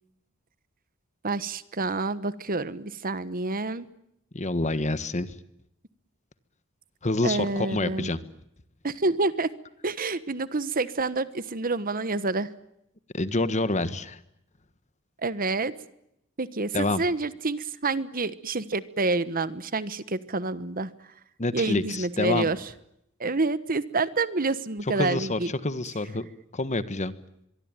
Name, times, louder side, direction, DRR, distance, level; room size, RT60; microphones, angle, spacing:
voice 1, 1.2-3.9 7.2-8.1 8.8-9.5 9.8-12.5 15.2-15.7 16.4-20.9 21.5-22.6 23.2-25.5, right 3 dB, 45° right, 15 dB, 1.3 m, -28 dB
voice 2, 4.3-5.3 7.0-8.2 13.1-14.2 16.7-17.0 21.4-22.5 25.0-26.3 26.5-27.1, left 2 dB, 35° left, 14 dB, 1.4 m, -27 dB
24.0 x 23.5 x 9.0 m, 0.79 s
head